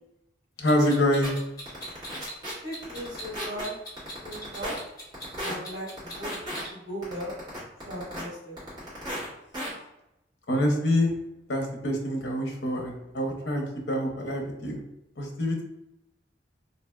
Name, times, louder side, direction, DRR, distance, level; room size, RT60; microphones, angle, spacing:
voice 1, 0.6-1.3 10.5-11.1 11.5-14.8 15.2-15.6, left 1 dB, 65° left, 1 dB, 0.7 m, -26 dB
Clock, 0.7-6.7, equal, 20° left, 0.9 m, -42 dB
sound 1, 0.8-0.9 1.2-1.3 1.7-2.5 2.8-3.6 4.0-4.8 5.1-5.5 6.0-6.6 7.0-8.2 8.6-9.3 9.5-9.7, equal, 25° right, 1.4 m, -34 dB
voice 2, 2.6-3.7 4.2-4.7 5.4-7.3 7.8-8.9, equal, 65° right, -8 dB, 1.5 m, -38 dB
3.3 x 2.6 x 2.2 m, 0.87 s
head